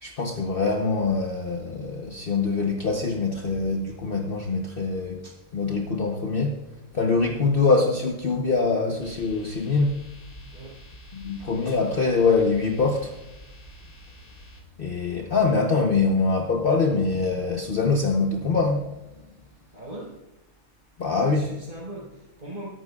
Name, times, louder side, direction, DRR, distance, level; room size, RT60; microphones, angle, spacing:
voice 1, 0.0-6.6 6.9-10.0 11.1-13.2 14.8-18.9 21.0-21.5, left 4 dB, 45° left, 2 dB, 1.0 m, -24 dB
sound 1, 9.0-14.6, equal, 85° left, 3.3 m, -47 dB
voice 2, 19.7-20.1 21.2-22.7, right 1 dB, 35° right, -7 dB, 4.3 m, -40 dB
21.5 x 12.0 x 2.4 m, 1.0 s
omnidirectional pair, 1.5 m